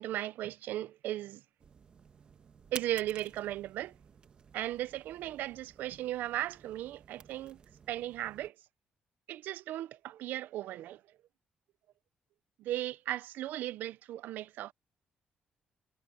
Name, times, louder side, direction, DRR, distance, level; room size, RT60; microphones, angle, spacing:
voice 1, 0.0-1.4 2.7-3.9 4.5-7.6 7.9-8.5 9.3-11.0 12.6-14.7, right 13 dB, 90° right, 0.5 m, -36 dB
sound 1, 1.6-8.5, right 6 dB, 35° right, 1.3 m, -52 dB
cardioid pair, 175°, 3 cm